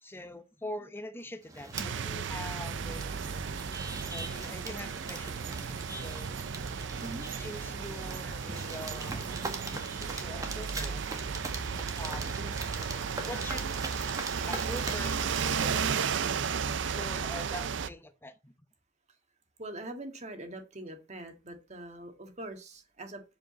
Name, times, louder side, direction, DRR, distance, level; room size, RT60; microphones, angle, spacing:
voice 1, 0.0-3.2 4.0-6.3 7.3-9.3 9.9-11.0 12.0-12.4 13.3-13.7 14.4-15.9 16.8-18.5, left 1 dB, 10° left, 0.9 m, -44 dB
sound 1, 1.4-15.9, right 2 dB, 20° right, 1.6 m, -42 dB
sound 2, 1.7-17.9, right 6 dB, 65° right, 0.5 m, -34 dB
voice 2, 19.6-23.2, right 1 dB, 35° right, 1.7 m, -43 dB
7.7 x 5.2 x 7.0 m
head